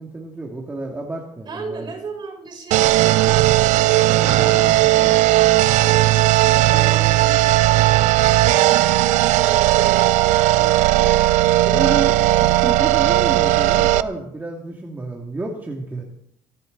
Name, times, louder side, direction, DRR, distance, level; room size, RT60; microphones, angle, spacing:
voice 1, 0.0-1.9 4.1-5.1 11.6-16.1, right 2 dB, 15° right, -1 dB, 2.3 m, -30 dB
voice 2, 1.4-5.5 5.8-11.4, right 4 dB, 35° right, 1 dB, 6.6 m, -36 dB
sound 1, 2.7-14.0, right 16 dB, 80° right, 0.7 m, -16 dB
22.5 x 16.0 x 4.0 m, 0.70 s
cardioid pair, 140°, 12 cm